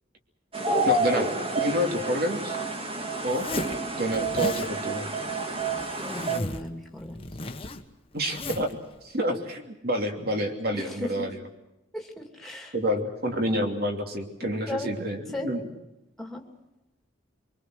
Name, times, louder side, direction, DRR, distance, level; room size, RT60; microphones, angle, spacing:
sound 1, 0.5-6.4, right 2 dB, 30° right, 2.0 m, -29 dB
voice 1, 0.8-1.3 1.6-2.6 3.2-3.5 4.0-5.1 8.1-8.8 9.0-11.4 12.7-15.6, equal, 50° right, 4 dB, 3.1 m, -28 dB
Zipper (clothing), 3.3-3.8 4.1-4.7 5.6-6.7 7.0-8.7, left 2 dB, 25° left, 1.3 m, -36 dB
voice 2, 6.0-7.3 10.7-11.4 11.9-12.7 14.4-14.9 15.3-15.5 16.2-16.4, left 1 dB, ahead, 2 dB, 2.7 m, -36 dB
24.5 x 24.0 x 6.4 m, 0.96 s
head